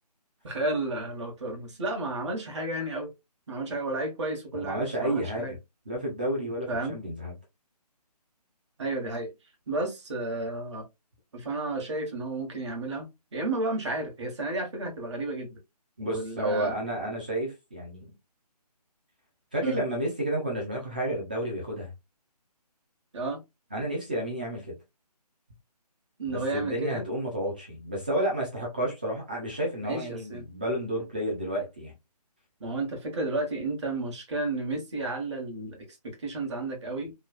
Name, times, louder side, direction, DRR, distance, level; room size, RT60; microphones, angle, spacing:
voice 1, 0.4-3.1 3.5-5.5 6.7-7.0 8.8-9.3 9.7-10.8 11.3-15.6 16.0-16.8 19.6-19.8 23.1-23.4 26.2-27.0 29.8-30.5 32.6-37.1, right 2 dB, 45° right, 1.1 m, -32 dB
voice 2, 4.5-5.6 5.9-7.3 16.0-18.1 19.5-21.9 23.7-24.8 26.3-31.9, right 1 dB, 15° right, 0.4 m, -31 dB
3.1 x 2.3 x 2.3 m
figure-of-eight pair, 150°, 21 cm